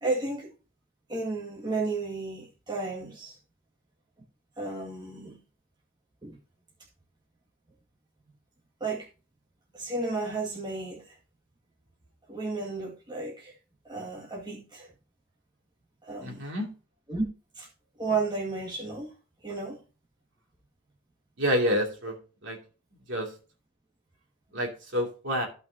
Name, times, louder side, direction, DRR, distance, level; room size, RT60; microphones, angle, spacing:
voice 1, 0.0-0.5 1.1-3.4 4.6-5.4 6.2-6.4 8.8-9.1 9.7-11.1 12.3-13.5 13.8-14.9 16.0-16.4 17.1-17.3 17.5-17.7 18.0-19.1 19.4-19.8, right 3 dB, 20° right, -4 dB, 2.1 m, -33 dB
voice 2, 16.2-16.7 21.4-22.2 22.4-22.6 23.1-23.3 24.5-25.5, equal, 60° right, 1 dB, 2.7 m, -28 dB
14.5 x 5.8 x 2.8 m, 0.35 s
head